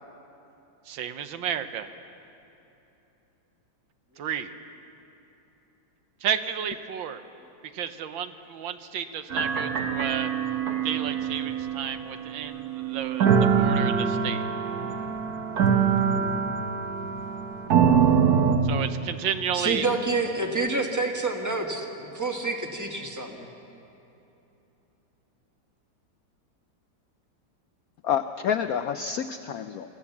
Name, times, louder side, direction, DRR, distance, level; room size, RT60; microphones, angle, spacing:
voice 1, 0.9-1.9 4.2-4.5 6.2-7.2 7.7-10.3 10.8-13.3 13.6-14.4 18.6-19.9, right 8 dB, 80° right, 10 dB, 1.6 m, -32 dB
sound 1, 9.3-18.6, right 7 dB, 55° right, 1.6 m, -24 dB
voice 2, 19.5-23.5, right 3 dB, 10° right, 3 dB, 1.3 m, -28 dB
voice 3, 28.0-30.0, left 8 dB, 75° left, 9 dB, 0.8 m, -28 dB
25.0 x 14.5 x 7.2 m, 3.0 s
omnidirectional pair, 2.1 m